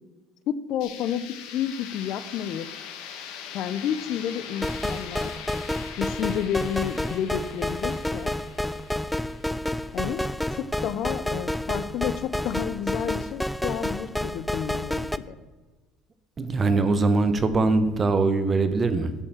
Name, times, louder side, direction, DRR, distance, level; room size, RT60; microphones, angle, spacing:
voice 1, 0.5-2.7 3.5-5.3 6.0-8.3 9.9-10.3 10.5-15.4, left 9 dB, 55° left, 14 dB, 0.6 m, -30 dB
sound 1, 0.8-10.6, left 8 dB, 75° left, 1.5 m, -42 dB
sound 2, 4.6-15.2, left 1 dB, 5° left, 0.3 m, -30 dB
voice 2, 16.4-19.1, right 3 dB, 20° right, 11 dB, 0.8 m, -22 dB
11.5 x 5.5 x 7.2 m, 1.3 s
cardioid pair, 150°, 0 cm